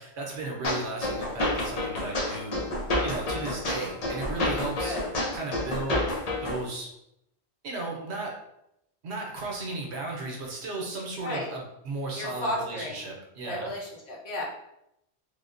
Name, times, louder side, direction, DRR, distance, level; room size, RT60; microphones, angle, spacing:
voice 1, 0.0-2.6 3.0-5.0 5.3-6.0 6.4-6.9 7.6-8.4 9.0-13.7, right 3 dB, 85° right, -1 dB, 1.0 m, -35 dB
sound 1, 0.6-6.6, left 1 dB, 45° left, 0.6 m, -29 dB
voice 2, 4.8-5.1 11.2-11.5 12.1-13.0 13.5-14.4, left 1 dB, 75° left, -4 dB, 1.1 m, -33 dB
3.5 x 2.0 x 2.5 m, 0.81 s
omnidirectional pair, 1.1 m